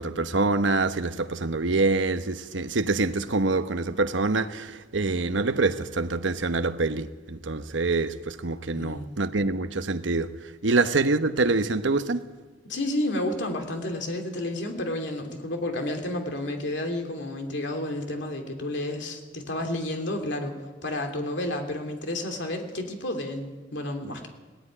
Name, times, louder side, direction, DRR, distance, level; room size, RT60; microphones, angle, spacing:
voice 1, 0.0-12.2, right 3 dB, 75° right, 1.0 m, -25 dB
voice 2, 8.8-9.1 12.7-20.6 20.8-24.3, left 1 dB, 65° left, 2.9 m, -31 dB
18.5 x 14.0 x 9.9 m
head